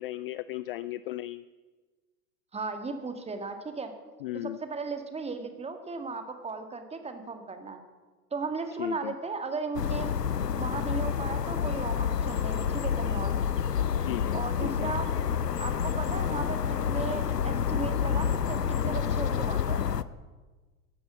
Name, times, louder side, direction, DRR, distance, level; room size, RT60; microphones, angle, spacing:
voice 1, 0.0-1.4 4.2-4.6 8.8-9.1 14.0-14.9, left 15 dB, 40° left, 16 dB, 0.4 m, -36 dB
voice 2, 2.5-3.9 4.3-7.8 8.3-13.4 14.3-15.1 15.6-19.8, right 4 dB, 15° right, 7 dB, 1.8 m, -36 dB
sound 1, 9.7-20.0, left 8 dB, 85° left, 0.7 m, -28 dB
15.0 x 11.5 x 7.3 m, 1.3 s
figure-of-eight pair, 85°, 47 cm